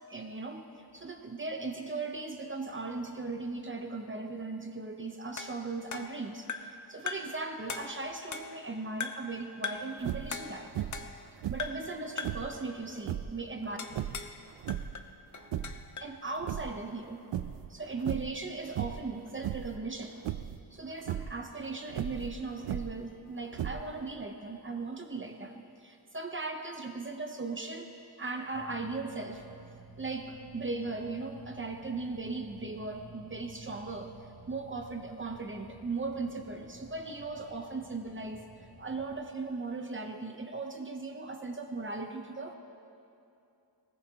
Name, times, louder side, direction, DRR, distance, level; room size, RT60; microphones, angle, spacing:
voice 1, 0.1-0.6 0.9-10.9 11.5-13.8 16.0-17.2 17.7-20.2 20.7-27.9 28.2-29.4 30.0-34.1 34.5-38.4 38.8-42.6, right 3 dB, 30° right, 4 dB, 0.8 m, -38 dB
sound 1, 5.4-6.8 7.1-7.4 7.7-8.7 9.0-9.3 9.6-10.0 10.3-11.3 11.6-11.9 12.2-12.5 13.8-14.4 14.7-16.2, left 5 dB, 45° left, 0.8 m, -40 dB
sound 2, 10.0-10.4 10.8-11.1 11.4-12.6 13.0-13.4 13.9-15.0 15.4-15.9 16.3-17.0 17.3-17.7 18.0-18.4 18.8-19.1 19.4-19.8 20.2-20.6 21.0-21.3 21.9-23.1 23.5-24.1, right 11 dB, 90° right, 0.6 m, -36 dB
sound 3, 28.5-39.2, right 3 dB, 5° right, 2.8 m, -53 dB
19.5 x 18.5 x 2.9 m, 2.7 s
wide cardioid pair, 150°, 42 cm